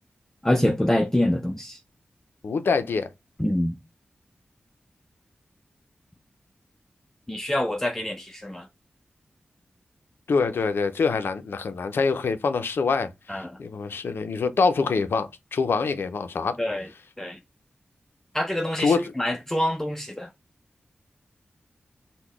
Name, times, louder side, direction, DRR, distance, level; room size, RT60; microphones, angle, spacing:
voice 1, 0.4-1.8 3.4-3.7 7.3-8.7 13.3-13.5 16.6-16.9 17.2-17.4 18.3-20.3, left 1 dB, 10° left, 0.4 m, -25 dB
voice 2, 2.4-3.1 10.3-16.6 18.8-19.1, left 4 dB, 80° left, 0.5 m, -25 dB
3.8 x 2.1 x 3.0 m
cardioid pair, 55°, 4 cm